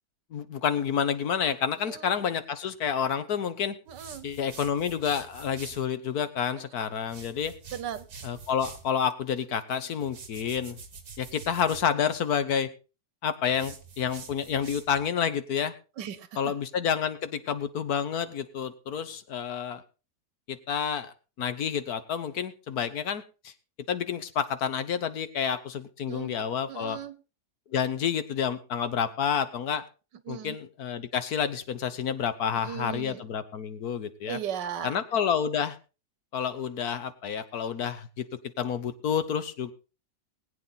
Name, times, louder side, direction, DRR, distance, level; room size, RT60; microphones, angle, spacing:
voice 1, 0.3-3.7 4.2-7.5 8.2-10.8 11.2-12.7 13.2-15.7 16.3-19.8 20.5-23.5 23.9-27.0 27.7-29.8 30.3-34.4 34.8-35.8 36.3-38.3 38.6-39.7, left 7 dB, 65° left, 1.5 m, -29 dB
sound 1, 3.9-5.9 7.0-8.9 10.0-11.9 13.5-15.1, right 5 dB, 65° right, 2.3 m, -46 dB
voice 2, 3.9-4.3 7.7-8.1 16.0-16.5 26.0-26.4 26.7-27.2 30.3-30.6 32.6-33.2 34.3-35.0, right 9 dB, 85° right, 1.7 m, -37 dB
20.5 x 8.7 x 4.1 m
omnidirectional pair, 1.8 m